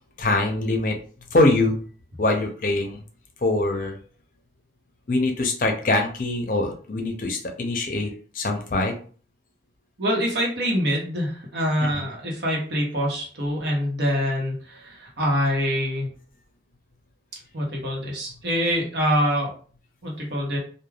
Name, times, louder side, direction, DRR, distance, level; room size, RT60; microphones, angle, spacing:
voice 1, 0.2-1.0 1.3-1.8 2.2-3.0 3.4-4.0 5.1-8.9 11.8-12.0, left 2 dB, 50° left, 3 dB, 0.5 m, -23 dB
voice 2, 10.0-16.1 17.5-19.5 20.0-20.6, equal, 75° right, -1 dB, 0.9 m, -25 dB
3.2 x 2.2 x 2.3 m, 0.42 s
head